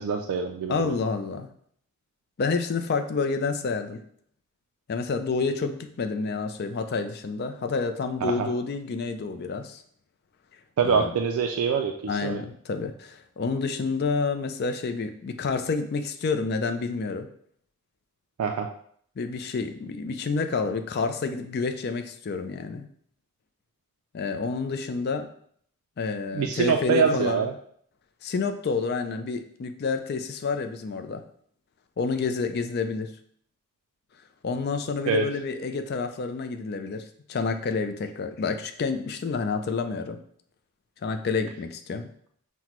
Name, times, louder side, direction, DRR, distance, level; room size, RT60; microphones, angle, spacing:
voice 1, 0.0-0.9 8.2-8.5 10.8-12.4 18.4-18.7 26.3-27.5 35.1-35.3, right 6 dB, 75° right, 4 dB, 0.3 m, -25 dB
voice 2, 0.7-1.5 2.4-4.0 4.9-9.8 10.8-11.1 12.1-17.3 19.2-22.9 24.1-25.3 26.0-27.5 28.2-31.2 32.0-33.1 34.4-40.2 41.0-42.1, left 4 dB, 45° left, 8 dB, 0.3 m, -29 dB
5.8 x 2.1 x 3.0 m, 0.63 s
head